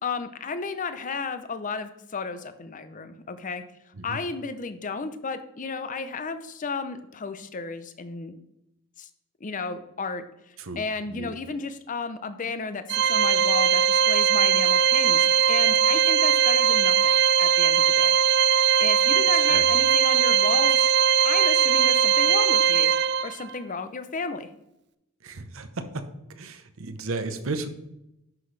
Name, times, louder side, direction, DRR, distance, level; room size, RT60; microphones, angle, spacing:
voice 1, 0.0-3.6 4.0-8.3 9.0-9.1 9.4-18.1 18.8-20.9 21.2-22.9 23.2-24.5, left 4 dB, 40° left, 11 dB, 0.6 m, -33 dB
voice 2, 10.6-11.4 19.4-19.7 25.2-26.0 26.3-27.7, right 3 dB, 70° right, 9 dB, 0.9 m, -34 dB
Organ, 12.9-23.6, right 8 dB, 50° right, 0.4 m, -20 dB
10.5 x 6.0 x 3.2 m, 0.86 s
head